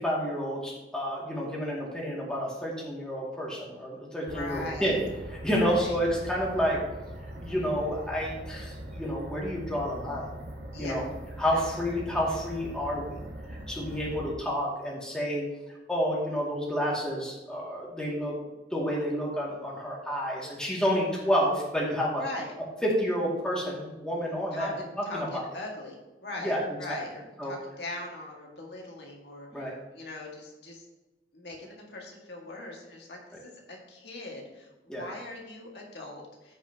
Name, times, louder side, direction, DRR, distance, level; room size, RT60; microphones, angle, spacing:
voice 1, 0.0-5.0 5.4-6.8 7.4-10.4 10.8-11.0 11.4-13.2 13.5-15.5 15.9-18.4 18.7-22.2 22.8-24.7 25.1-25.4 26.4-26.6 26.9-27.0 27.4-27.5 29.5-29.7 34.9-35.0, equal, 5° left, -5 dB, 2.3 m, -29 dB
voice 2, 4.2-5.0 5.5-6.0 10.7-11.1 11.5-11.8 13.8-14.2 20.9-21.0 22.2-22.5 24.5-24.7 25.0-30.9 31.3-36.6, left 2 dB, 70° left, -1 dB, 1.9 m, -41 dB
sound 1, 4.3-14.3, right 1 dB, 70° right, 1.4 m, -41 dB
15.0 x 5.5 x 2.9 m, 1.1 s
head